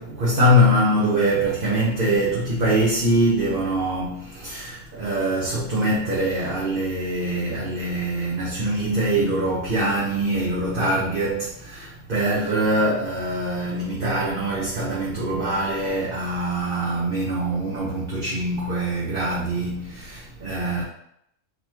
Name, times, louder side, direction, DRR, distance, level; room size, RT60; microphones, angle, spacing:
voice 1, 0.0-20.8, right 1 dB, 45° right, -7 dB, 1.2 m, -23 dB
4.2 x 4.2 x 3.0 m, 0.75 s
omnidirectional pair, 1.3 m